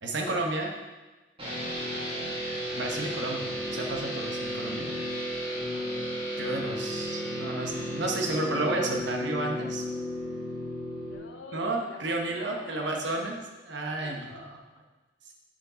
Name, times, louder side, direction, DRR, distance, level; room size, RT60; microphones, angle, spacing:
voice 1, 0.0-0.7 2.8-4.9 6.4-9.9 11.5-13.4 13.6-14.5, right 2 dB, 65° right, 1 dB, 1.2 m, -32 dB
sound 1, 1.4-11.2, equal, 30° right, 2.2 m, -33 dB
voice 2, 5.5-5.9 11.0-13.0 14.0-14.5, left 2 dB, 85° left, 3 dB, 0.9 m, -47 dB
8.4 x 5.0 x 3.9 m, 1.2 s
head